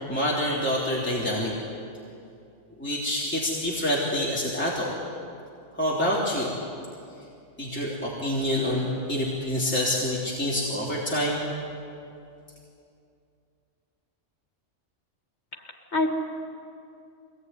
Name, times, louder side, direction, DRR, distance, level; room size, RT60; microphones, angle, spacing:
voice 1, 0.1-1.5 2.8-4.9 5.7-6.5 7.6-11.5, left 1 dB, 10° left, -7 dB, 3.3 m, -27 dB
voice 2, 15.5-16.1, left 2 dB, 65° left, 2 dB, 2.5 m, -27 dB
23.5 x 19.0 x 9.5 m, 2.6 s
omnidirectional pair, 1.2 m